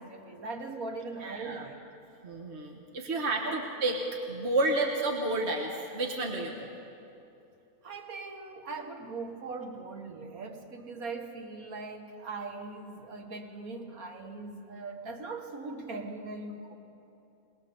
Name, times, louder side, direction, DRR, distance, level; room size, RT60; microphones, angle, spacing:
voice 1, 0.0-1.8 3.4-3.7 7.8-16.7, right 3 dB, 85° right, 4 dB, 1.9 m, -40 dB
voice 2, 1.2-1.6 2.2-4.0 4.3-6.7, right 2 dB, 50° right, 1 dB, 1.7 m, -30 dB
23.0 x 19.5 x 6.9 m, 2.8 s
omnidirectional pair, 1.5 m